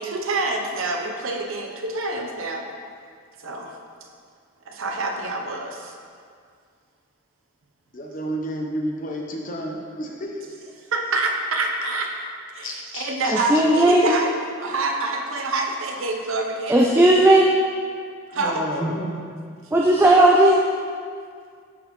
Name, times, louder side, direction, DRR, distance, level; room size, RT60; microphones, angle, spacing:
voice 1, 0.0-2.7 3.4-3.7 4.7-5.9 10.9-12.1 12.5-14.3 14.6-17.1 18.3-18.6, right 2 dB, 70° right, 2 dB, 0.7 m, -26 dB
voice 2, 7.9-10.5 12.6-13.4 18.3-19.1, equal, 40° left, 0 dB, 0.7 m, -31 dB
voice 3, 13.3-14.1 16.7-17.5 18.8-18.9 19.7-20.6, right 1 dB, 10° right, -2 dB, 0.3 m, -16 dB
10.5 x 4.1 x 3.1 m, 2.1 s
head